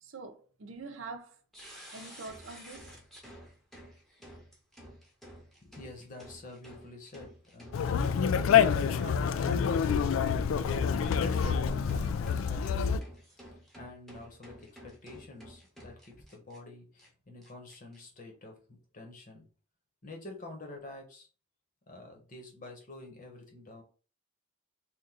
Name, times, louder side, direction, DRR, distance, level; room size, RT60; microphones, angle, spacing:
voice 1, 0.0-1.4 1.9-3.0, right 4 dB, 70° right, 0.6 m, -45 dB
sound 1, 1.5-16.6 17.0-17.1 17.4-18.0, equal, ahead, 0.8 m, -52 dB
voice 2, 5.6-8.0 8.5-19.5 20.0-21.3 21.9-23.8, left 2 dB, 40° left, 1.0 m, -48 dB
Conversation, 7.7-13.0, left 7 dB, 75° left, 0.3 m, -27 dB
2.9 x 2.5 x 3.7 m
head